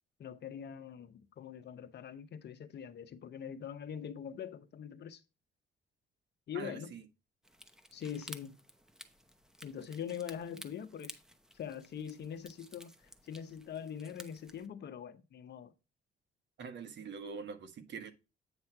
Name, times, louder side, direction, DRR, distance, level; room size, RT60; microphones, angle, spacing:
voice 1, 0.2-5.2 6.5-6.9 7.9-8.6 9.6-11.2 11.5-12.9 13.2-15.7, left 8 dB, 60° left, 0.9 m, -43 dB
voice 2, 6.5-7.0 16.6-18.1, right 5 dB, 65° right, 1.3 m, -44 dB
sound 1, 7.4-14.7, equal, 5° right, 0.9 m, -54 dB
8.9 x 3.1 x 5.9 m
cardioid pair, 90°, 20 cm